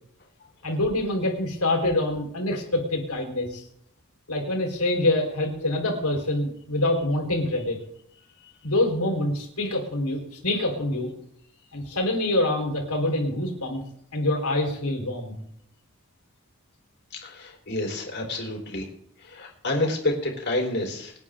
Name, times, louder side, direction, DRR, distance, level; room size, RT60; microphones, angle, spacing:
voice 1, 0.6-3.6 4.3-7.8 8.6-11.1 11.7-13.8 14.1-15.4, left 1 dB, 80° left, 1 dB, 4.5 m, -25 dB
voice 2, 17.1-18.9 19.2-21.2, left 1 dB, 50° left, 1 dB, 4.2 m, -29 dB
25.5 x 9.4 x 3.8 m, 0.72 s
head